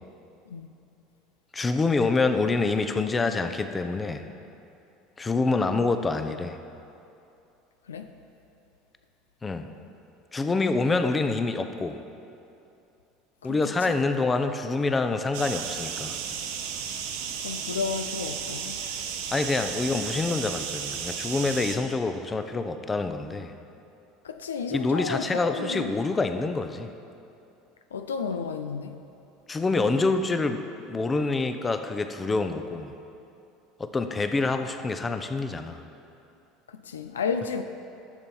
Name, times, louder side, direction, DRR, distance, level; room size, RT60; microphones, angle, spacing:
voice 1, 1.5-4.2 5.2-6.6 9.4-9.7 10.3-12.0 13.4-16.2 19.3-23.5 24.7-26.9 29.5-30.6 30.9-32.9 33.8-35.8, left 3 dB, 20° left, 8 dB, 0.7 m, -26 dB
voice 2, 13.4-14.0 17.4-18.8 24.2-25.9 27.9-29.0 36.7-37.6, left 5 dB, 85° left, 8 dB, 0.4 m, -32 dB
sound 1, 15.3-21.8, right 7 dB, 70° right, 0.8 m, -34 dB
12.0 x 6.9 x 4.3 m, 2.7 s
hypercardioid pair, 75°, 0 cm